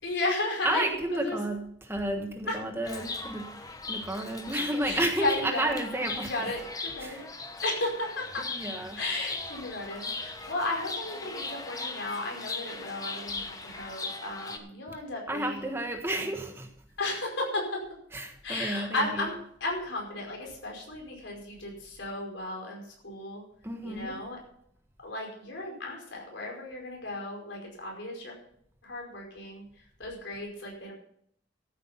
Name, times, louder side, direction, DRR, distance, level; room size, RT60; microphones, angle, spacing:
voice 1, 0.0-1.4 2.5-2.6 4.8-5.8 6.1-7.2 7.6-8.5 9.0-15.7 16.1-16.3 17.0-17.8 18.4-23.4 23.8-24.4 25.0-28.3 28.8-30.9, left 2 dB, 75° left, 0 dB, 5.0 m, -34 dB
voice 2, 0.6-6.4 7.0-7.3 8.4-9.1 14.9-15.0 15.3-16.7 18.1-19.3 23.6-24.2, right 1 dB, 15° right, 4 dB, 1.4 m, -32 dB
Chirp tweet, 2.8-14.6, left 3 dB, 20° left, 1.1 m, -39 dB
13.5 x 8.7 x 5.7 m, 0.68 s
head